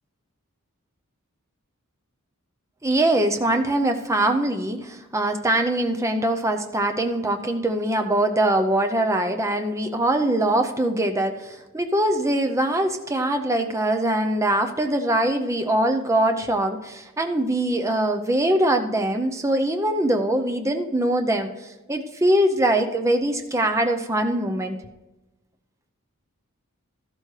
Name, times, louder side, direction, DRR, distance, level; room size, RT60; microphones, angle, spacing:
voice 1, 2.8-21.5 21.9-24.8, right 1 dB, 15° right, 6 dB, 0.6 m, -22 dB
13.5 x 12.0 x 3.2 m, 1.1 s
head